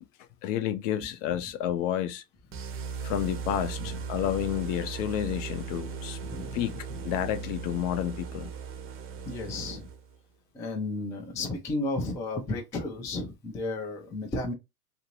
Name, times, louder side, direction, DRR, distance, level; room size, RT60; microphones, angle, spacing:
voice 1, 0.4-2.2 3.0-6.2 6.5-6.7 7.0-8.5, left 11 dB, 55° left, 0.6 m, -30 dB
sound 1, 2.5-10.2, right 6 dB, 30° right, 0.6 m, -38 dB
voice 2, 6.2-6.6 6.9-7.0 9.3-9.9 10.5-14.5, left 2 dB, 10° left, 0.3 m, -33 dB
2.8 x 2.6 x 2.9 m
hypercardioid pair, 110°, 45 cm